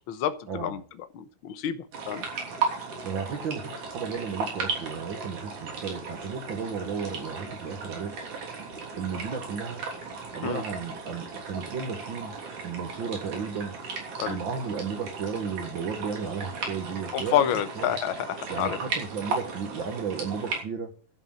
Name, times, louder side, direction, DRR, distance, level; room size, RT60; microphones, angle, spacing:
voice 1, 0.1-0.8 1.1-2.2 10.4-10.6 14.2-14.4 17.1-18.8, left 10 dB, 80° left, 11 dB, 1.1 m, -28 dB
sound 1, 1.9-20.6, right 4 dB, 70° right, 4.6 m, -36 dB
voice 2, 3.0-8.2 9.0-9.8 10.3-12.3 12.6-13.7 14.3-17.5 17.8-17.9 18.5-20.9, right 6 dB, 50° right, 5 dB, 1.5 m, -34 dB
11.5 x 7.1 x 8.8 m, 0.41 s
omnidirectional pair, 3.7 m